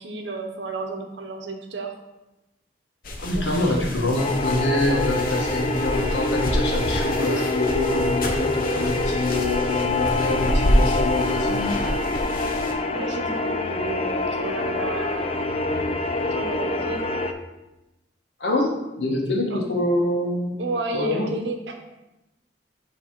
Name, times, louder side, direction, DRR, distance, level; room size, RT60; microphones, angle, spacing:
voice 1, 0.0-2.0 3.4-3.9 12.9-15.5 16.3-17.0 19.5-19.6 20.6-21.7, right 3 dB, 90° right, 4 dB, 0.9 m, -32 dB
sound 1, 3.0-12.7, equal, 55° left, 0.8 m, -28 dB
voice 2, 3.2-11.8 18.4-20.6 20.9-21.3, left 1 dB, 80° left, -1 dB, 1.4 m, -25 dB
sound 2, 4.2-17.3, left 2 dB, 35° left, 0.4 m, -26 dB
7.3 x 3.3 x 4.6 m, 0.99 s
head